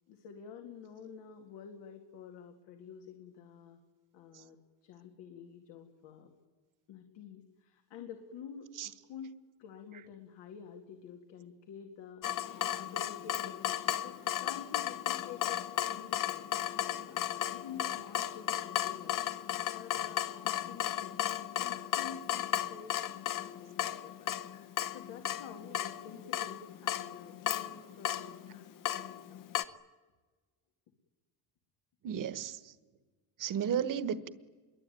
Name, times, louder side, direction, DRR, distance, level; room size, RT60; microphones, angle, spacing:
voice 1, 0.1-3.8 4.1-6.3 6.9-12.3 12.7-16.6 17.1-19.2 19.7-24.3 24.9-28.7 29.0-29.5, left 7 dB, 85° left, 2.4 m, -49 dB
Water tap faucet / Drip, 12.2-29.6, left 12 dB, 50° left, 0.9 m, -35 dB
voice 2, 32.0-32.7 33.4-34.3, right 8 dB, 50° right, 1.3 m, -34 dB
27.5 x 22.5 x 9.4 m
cardioid pair, 140°, 42 cm